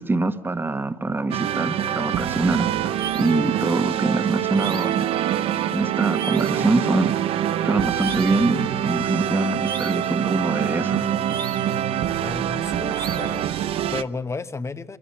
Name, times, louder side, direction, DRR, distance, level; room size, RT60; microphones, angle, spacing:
voice 1, 0.0-5.1 5.7-7.2 7.6-11.1, right 2 dB, 20° right, 9 dB, 1.5 m, -24 dB
sound 1, 1.3-14.0, right 10 dB, 70° right, 0.8 m, -25 dB
sound 2, 2.0-11.8, left 7 dB, 85° left, 6.5 m, -52 dB
sound 3, 2.9-3.5 4.5-5.1 6.1-6.7 7.9-8.5 9.6-10.2 11.3-11.8 12.9-13.5, right 6 dB, 50° right, 2.5 m, -36 dB
voice 2, 12.2-15.0, left 4 dB, 30° left, 11 dB, 1.3 m, -33 dB
23.0 x 15.0 x 8.8 m, 0.93 s
supercardioid pair, 70°, 10 cm